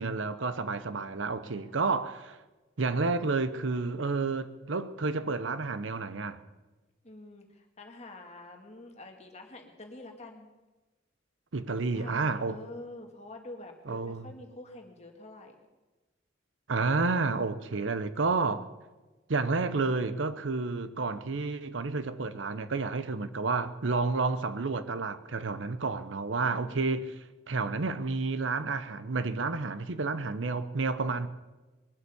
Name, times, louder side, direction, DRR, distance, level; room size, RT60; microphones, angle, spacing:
voice 1, 0.0-2.4 2.8-6.4 11.5-12.6 13.9-14.2 16.7-18.7 19.3-27.1 27.5-31.3, right 3 dB, 80° right, 0.8 m, -30 dB
voice 2, 1.4-2.0 7.0-10.5 11.8-15.6 26.4-26.9, left 2 dB, 35° left, 1.9 m, -47 dB
21.0 x 8.0 x 7.0 m
head